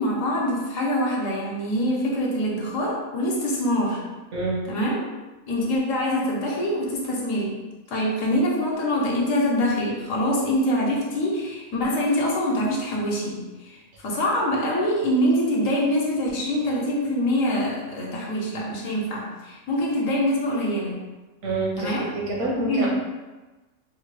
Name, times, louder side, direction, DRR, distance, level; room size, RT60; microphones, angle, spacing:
voice 1, 0.0-4.0 4.7-5.0 5.5-7.6 7.9-21.0 21.8-22.1 22.6-22.9, equal, 70° left, -3 dB, 1.1 m, -24 dB
voice 2, 21.4-21.9 22.3-22.9, right 2 dB, 75° right, -3 dB, 1.3 m, -26 dB
4.4 x 2.2 x 3.1 m, 1.2 s
omnidirectional pair, 1.5 m